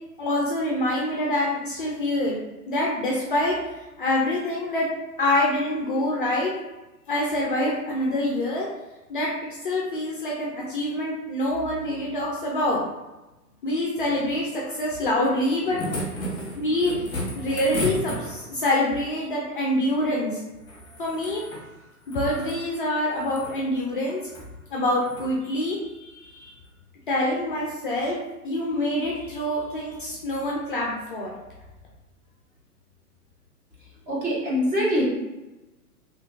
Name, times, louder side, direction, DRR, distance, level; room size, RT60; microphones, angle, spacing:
voice 1, 0.2-2.4 2.7-3.6 4.0-4.9 5.2-6.5 7.1-8.7 9.1-9.3 9.6-12.8 13.6-15.8 16.5-16.9 17.3-20.4 21.0-21.4 22.1-24.2 24.7-26.5 27.1-28.2 28.4-31.3, left 1 dB, 35° left, -3 dB, 0.4 m, -25 dB
sound 1, 15.4-18.7 20.6-21.6 22.0-22.6 23.1-23.6 24.2-24.5 25.0-25.3 26.6-26.7, left 1 dB, 20° left, 0.9 m, -33 dB
voice 2, 34.1-35.0, equal, 15° right, -6 dB, 0.7 m, -23 dB
2.8 x 2.7 x 2.4 m, 1.0 s
figure-of-eight pair, 120°, 46 cm